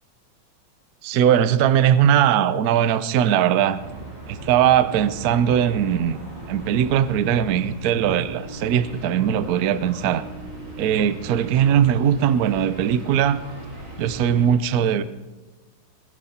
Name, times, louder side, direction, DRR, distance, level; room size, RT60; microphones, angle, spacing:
voice 1, 1.0-3.8 4.3-6.2 6.5-10.2 10.8-13.4 14.0-15.0, right 9 dB, 60° right, 14 dB, 1.0 m, -20 dB
sound 1, 3.7-14.5, right 2 dB, 40° right, 4.3 m, -38 dB
22.0 x 12.0 x 4.3 m, 1.2 s
omnidirectional pair, 2.2 m